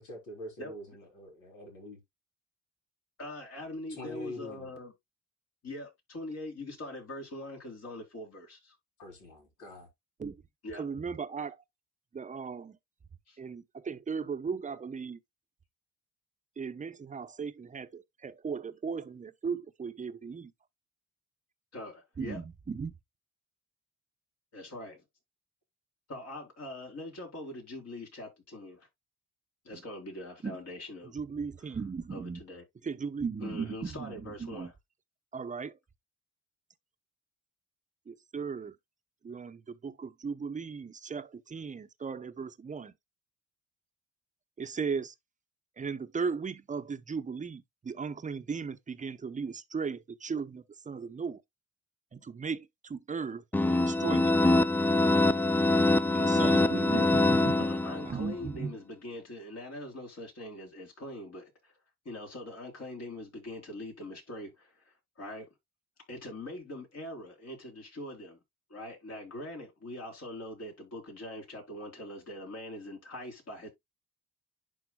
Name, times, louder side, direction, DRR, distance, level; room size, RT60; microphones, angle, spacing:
voice 1, 0.0-2.0 3.9-4.7 9.0-9.9, left 1 dB, 85° left, 3.1 m, -44 dB
voice 2, 0.6-1.0 3.2-4.9 5.6-8.8 10.6-10.8 13.3-13.4 21.7-22.4 24.5-25.0 26.1-28.9 29.6-31.1 32.1-32.6 33.4-34.7 56.0-57.1 57.6-61.7 62.1-65.5 66.1-68.4 68.7-73.7, left 1 dB, 55° left, 3.9 m, -42 dB
voice 3, 10.7-11.6 12.1-12.8 13.4-15.2 16.6-20.5 22.2-22.9 29.7-29.8 30.4-30.6 31.1-32.4 32.8-34.7 35.3-35.8 38.1-38.8 39.2-42.9 44.6-45.1 45.8-51.4 52.1-53.4 53.7-54.4 56.1-57.7 58.0-58.7, right 5 dB, 25° right, 0.7 m, -37 dB
sound 1, 53.5-58.3, left 2 dB, 5° left, 0.3 m, -24 dB
11.0 x 3.9 x 2.2 m
cardioid pair, 90°, 30 cm